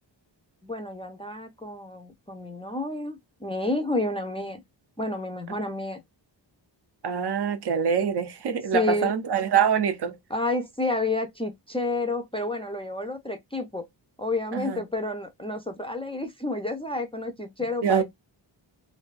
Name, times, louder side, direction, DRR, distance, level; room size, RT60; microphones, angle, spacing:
voice 1, 0.6-4.6 5.0-6.0 8.7-9.1 10.3-13.9 14.2-18.0, left 2 dB, 15° left, 0.4 m, -30 dB
voice 2, 7.0-10.2 14.5-14.8 17.8-18.0, right 7 dB, 60° right, 0.5 m, -24 dB
2.6 x 2.2 x 2.3 m
wide cardioid pair, 110°, 45 cm